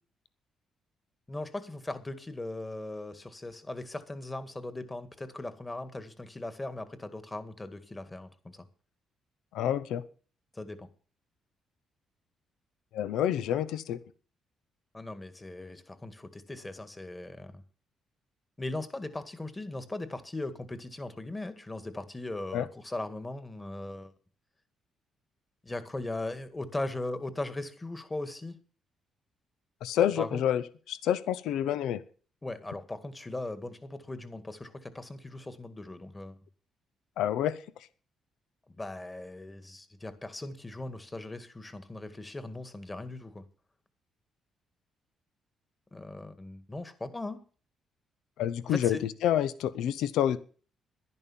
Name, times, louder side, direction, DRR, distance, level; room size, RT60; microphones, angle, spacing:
voice 1, 1.3-8.7 10.5-10.9 14.9-17.6 18.6-24.1 25.6-28.6 30.0-30.4 32.4-36.4 38.7-43.4 45.9-47.4 48.6-49.0, left 2 dB, 20° left, 11 dB, 2.0 m, -39 dB
voice 2, 9.5-10.0 12.9-14.0 22.5-22.6 29.8-30.6 30.9-32.0 37.2-37.6 48.4-49.0 49.2-50.4, left 10 dB, 85° left, 16 dB, 0.8 m, -28 dB
11.0 x 11.0 x 7.4 m, 0.41 s
cardioid pair, 90°, 0 cm